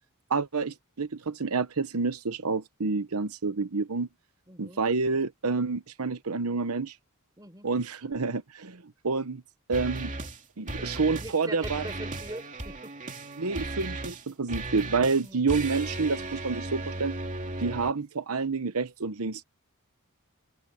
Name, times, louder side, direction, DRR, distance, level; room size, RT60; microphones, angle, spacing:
voice 1, 0.3-4.1 4.6-6.9 7.6-9.4 9.7-10.1 10.6-11.9 13.4-17.1 17.6-19.4, right 4 dB, 75° right, 1.0 m, -28 dB
voice 2, 4.5-4.8 7.4-7.7 10.8-12.9 15.1-15.4, right 1 dB, 20° right, 4.2 m, -42 dB
sound 1, 9.7-10.4 10.7-11.4 11.6-17.9, right 2 dB, 35° right, 2.7 m, -36 dB
head